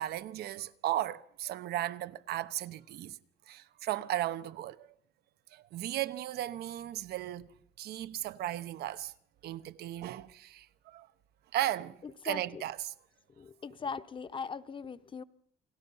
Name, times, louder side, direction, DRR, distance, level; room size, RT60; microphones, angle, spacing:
voice 1, 0.0-3.2 3.5-4.9 5.5-7.5 7.8-9.1 9.4-11.1 11.5-12.0 12.2-12.9, right 13 dB, 70° right, 1.0 m, -36 dB
voice 2, 12.0-12.6 13.4-15.2, left 5 dB, 30° left, 1.0 m, -40 dB
29.0 x 19.5 x 5.6 m
cardioid pair, 110°, 17 cm